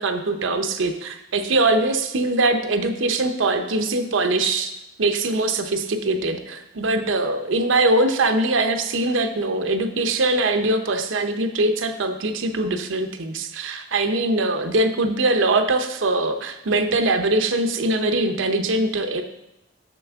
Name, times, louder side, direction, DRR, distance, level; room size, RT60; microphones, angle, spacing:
voice 1, 0.0-4.7 5.0-19.2, right 2 dB, 90° right, 7 dB, 0.7 m, -22 dB
7.0 x 6.2 x 3.5 m, 0.88 s
head